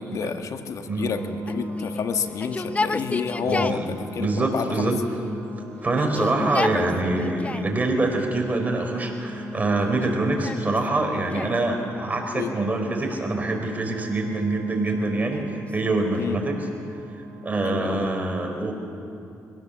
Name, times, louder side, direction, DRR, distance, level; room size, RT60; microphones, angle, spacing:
voice 1, 0.0-4.9 6.3-7.1 12.3-12.5 16.2-16.4 17.6-18.1, left 6 dB, 65° left, 7 dB, 1.4 m, -30 dB
sound 1, 1.0-17.7, equal, 5° right, 3.8 m, -40 dB
Yell, 1.5-3.9 4.7-5.5 5.9-7.8 8.5-9.1 9.8-11.7 13.0-13.9 14.7-16.4, left 3 dB, 20° left, 0.8 m, -33 dB
voice 2, 3.4-4.9 5.8-16.6 17.4-18.7, right 2 dB, 25° right, 3 dB, 4.2 m, -25 dB
22.5 x 17.0 x 7.1 m, 2.6 s
cardioid pair, 80°, 6 cm